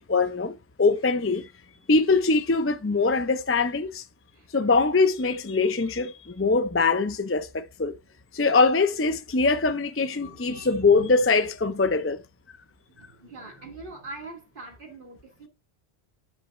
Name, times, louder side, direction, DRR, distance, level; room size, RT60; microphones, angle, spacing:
voice 1, 0.0-1.5 1.9-4.0 4.5-7.9 8.3-12.2, left 3 dB, 20° left, 0.4 m, -23 dB
voice 2, 10.1-11.1 12.9-15.5, right 2 dB, 55° right, 2.5 m, -43 dB
10.5 x 4.1 x 3.7 m
omnidirectional pair, 1.1 m